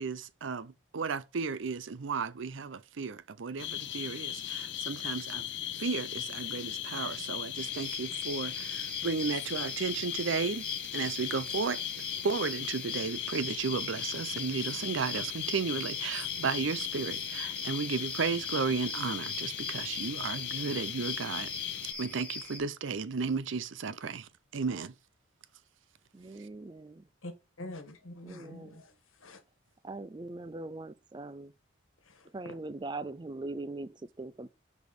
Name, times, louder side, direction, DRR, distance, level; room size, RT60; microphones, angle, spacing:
voice 1, 0.0-5.4 5.8-10.7 10.9-11.8 12.2-21.5 22.0-24.9, right 5 dB, 70° right, 0.6 m, -34 dB
sound 1, 3.6-21.9, left 12 dB, 60° left, 0.7 m, -38 dB
sound 2, 7.6-22.6, left 2 dB, 5° left, 1.5 m, -42 dB
voice 2, 26.1-27.1 28.2-28.8 29.8-31.5 32.3-34.5, right 2 dB, 20° right, 0.4 m, -41 dB
voice 3, 27.6-29.4 32.0-32.6, left 2 dB, 85° left, 1.6 m, -46 dB
6.2 x 5.2 x 4.8 m
head